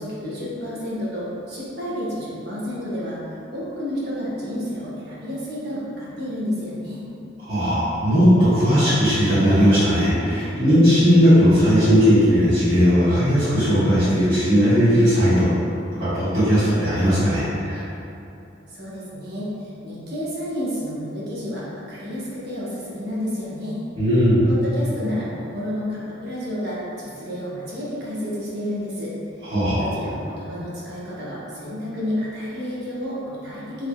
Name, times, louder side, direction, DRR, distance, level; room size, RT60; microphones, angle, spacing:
voice 1, 0.0-3.2 3.5-7.0 18.7-19.5 19.8-23.8 24.5-29.1 29.4-29.5 29.8-33.9, equal, 55° right, -8 dB, 0.9 m, -30 dB
voice 2, 7.5-15.5 16.0-17.8 24.0-24.4 29.5-29.9, equal, 35° right, -18 dB, 1.3 m, -17 dB
3.9 x 3.1 x 2.2 m, 2.8 s
head